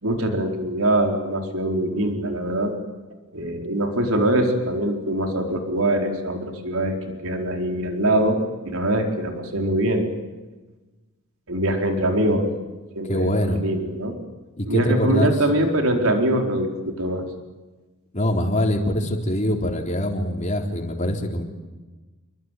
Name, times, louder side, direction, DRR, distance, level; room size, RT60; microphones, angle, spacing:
voice 1, 0.0-2.8 3.3-10.1 11.5-12.5 13.0-13.3 13.6-14.2 14.7-17.2, right 1 dB, 80° right, 3 dB, 4.4 m, -23 dB
voice 2, 13.1-13.6 14.6-15.3 18.1-21.4, left 1 dB, 35° left, 2 dB, 3.8 m, -23 dB
28.5 x 22.5 x 9.3 m, 1.2 s
head